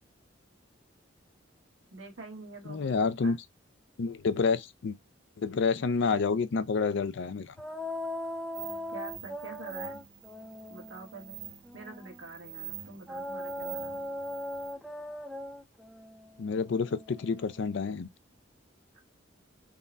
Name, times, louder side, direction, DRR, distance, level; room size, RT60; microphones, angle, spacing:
voice 1, 1.9-2.9 3.2-3.3 8.9-10.0 10.7-11.4 11.7-14.0, right 3 dB, 75° right, 1.4 m, -46 dB
voice 2, 2.7-3.4 4.0-5.0 5.4-7.5 16.4-18.1, left 4 dB, 65° left, 0.4 m, -29 dB
sound 1, 7.6-12.2 13.1-17.8, left 1 dB, ahead, 0.5 m, -40 dB
sound 2, 8.5-14.7, right 11 dB, 45° right, 0.5 m, -46 dB
3.7 x 2.1 x 2.5 m
head